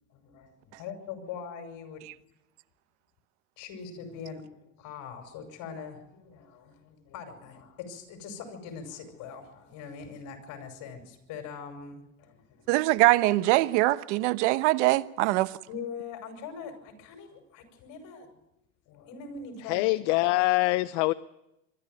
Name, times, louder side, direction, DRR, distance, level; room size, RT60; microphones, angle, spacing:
voice 1, 0.1-2.1 3.6-12.7 15.7-18.4 18.9-19.9, left 6 dB, 60° left, 6.0 m, -42 dB
voice 2, 12.7-15.5, right 19 dB, 85° right, 1.0 m, -23 dB
voice 3, 19.7-21.1, left 21 dB, 75° left, 0.7 m, -24 dB
24.0 x 13.0 x 9.4 m
supercardioid pair, 105°, 35 cm